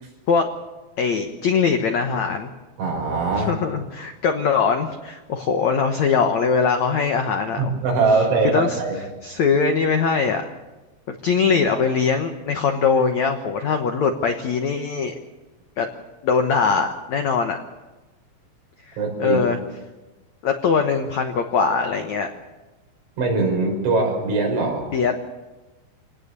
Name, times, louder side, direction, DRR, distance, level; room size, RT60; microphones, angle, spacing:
voice 1, 1.0-2.5 3.4-7.7 8.5-8.8 9.2-10.5 11.1-15.1 15.8-15.9 16.2-17.6 18.9-19.6 20.4-22.3 24.9-25.2, left 5 dB, 85° left, 5 dB, 1.6 m, -21 dB
voice 2, 2.8-3.6 7.6-9.0 19.0-19.4 23.2-24.9, right 3 dB, 80° right, 1 dB, 8.1 m, -21 dB
26.5 x 18.5 x 6.8 m, 1.1 s
omnidirectional pair, 5.3 m